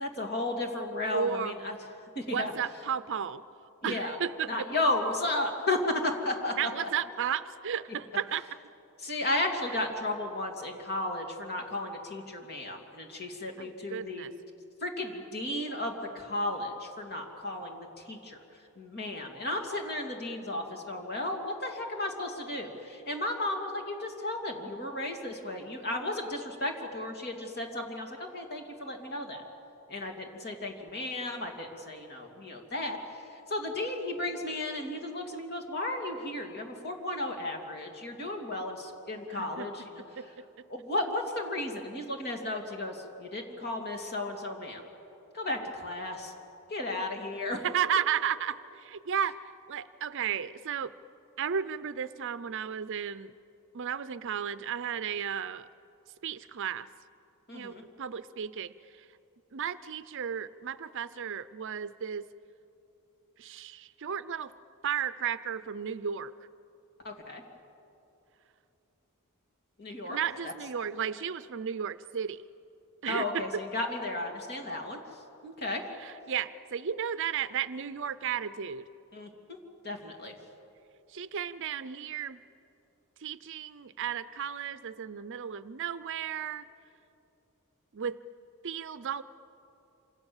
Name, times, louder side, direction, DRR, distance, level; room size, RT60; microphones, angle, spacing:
voice 1, 0.0-1.8 2.1-2.5 3.8-4.2 4.5-6.5 9.0-14.3 14.8-18.4 18.8-29.4 29.9-33.0 33.5-40.0 40.7-44.8 45.3-46.3 46.7-47.7 57.5-57.8 67.0-67.4 69.8-70.2 73.1-75.0 75.4-75.8 79.1-79.6 79.8-80.3, left 2 dB, 45° left, 3 dB, 2.9 m, -34 dB
voice 2, 1.1-1.6 2.3-3.4 3.8-4.7 6.6-8.5 9.7-9.8 13.6-14.3 39.3-39.7 40.2-40.3 47.6-49.4 49.7-50.9 51.4-53.3 53.7-55.7 56.2-56.9 57.5-59.1 59.5-62.3 63.4-64.5 64.8-66.3 70.1-72.4 73.0-73.6 76.0-78.8 81.1-82.4 83.2-86.6 87.9-88.2 88.6-89.2, right 8 dB, 55° right, 14 dB, 0.5 m, -34 dB
27.0 x 27.0 x 7.2 m, 2.9 s
head